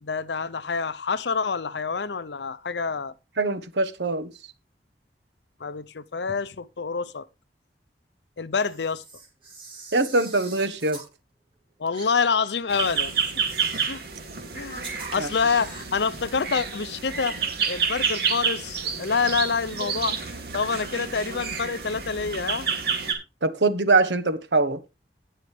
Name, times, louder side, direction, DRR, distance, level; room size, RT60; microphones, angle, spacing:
voice 1, 0.0-3.1 5.6-7.3 8.4-9.0 11.8-13.5 13.9-14.0 14.5-17.4 17.7-20.2 20.5-22.7, left 5 dB, 80° left, 0.7 m, -27 dB
voice 2, 3.4-4.3 9.9-11.0 15.1-15.3 23.4-24.8, right 3 dB, 80° right, 1.2 m, -23 dB
Camera, 8.5-11.1 11.9-12.1 12.7-14.0 14.8-16.0, right 4 dB, 30° right, 4.1 m, -43 dB
sound 1, 12.7-23.1, right 6 dB, 60° right, 2.4 m, -29 dB
18.0 x 6.4 x 3.3 m
head